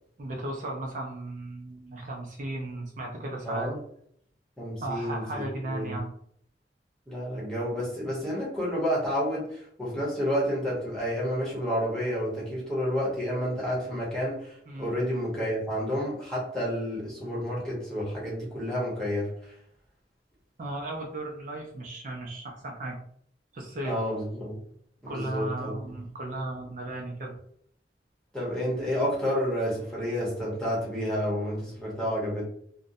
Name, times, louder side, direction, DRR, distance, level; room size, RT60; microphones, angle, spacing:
voice 1, 0.2-3.7 4.8-6.1 8.0-8.1 14.7-14.9 20.6-23.0 23.5-24.0 25.1-27.4, right 2 dB, 45° right, 0 dB, 0.4 m, -35 dB
voice 2, 3.4-3.8 4.6-6.0 7.1-19.5 23.8-24.6 25.1-25.7 28.3-32.5, equal, 5° left, -6 dB, 0.9 m, -30 dB
2.6 x 2.1 x 2.5 m, 0.66 s
head